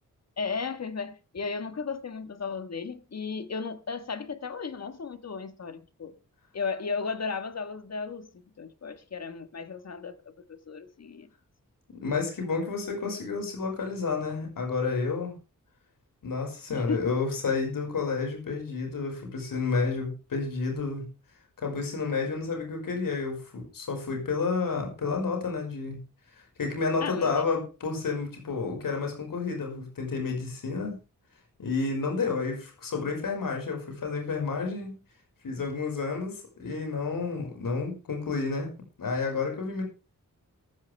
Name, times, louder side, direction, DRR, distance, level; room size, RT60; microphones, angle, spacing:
voice 1, 0.4-6.1 6.5-10.2 10.5-11.3 16.7-17.0 27.0-27.4, left 5 dB, 50° left, 1.5 m, -35 dB
voice 2, 12.0-15.3 16.2-21.1 21.6-26.0 26.6-31.0 31.6-35.0 35.4-38.7 39.0-39.8, left 4 dB, 85° left, 5.5 m, -30 dB
14.0 x 14.0 x 3.4 m
wide cardioid pair, 155°, 33 cm